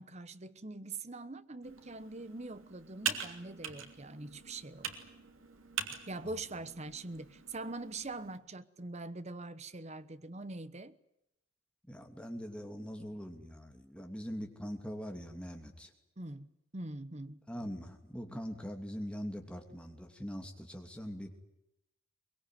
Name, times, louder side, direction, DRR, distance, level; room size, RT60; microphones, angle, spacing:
voice 1, 0.0-4.9 6.1-11.0 16.2-16.5 16.7-17.4, right 2 dB, 35° right, 1.0 m, -43 dB
Computer keyboard, 1.6-8.4, right 7 dB, 80° right, 2.9 m, -43 dB
voice 2, 11.9-15.9 17.5-21.4, equal, 5° left, 2.8 m, -42 dB
23.0 x 22.0 x 9.4 m
head